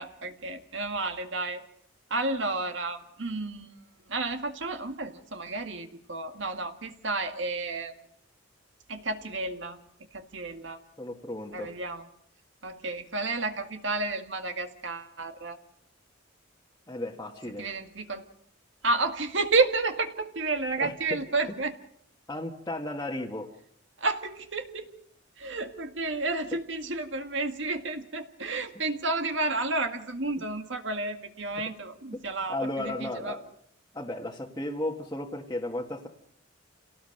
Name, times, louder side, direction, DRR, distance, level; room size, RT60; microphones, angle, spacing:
voice 1, 0.0-1.6 2.1-3.7 4.1-7.9 8.9-9.8 10.1-10.8 11.5-12.0 12.6-15.6 17.6-18.3 18.8-21.7 24.0-24.9 25.4-33.4, right 3 dB, 65° right, 6 dB, 2.0 m, -31 dB
voice 2, 11.0-11.7 16.9-17.7 20.8-21.2 22.3-23.5 32.5-33.4 33.9-36.1, left 1 dB, 20° left, -2 dB, 1.7 m, -34 dB
28.0 x 18.0 x 6.6 m, 0.70 s
head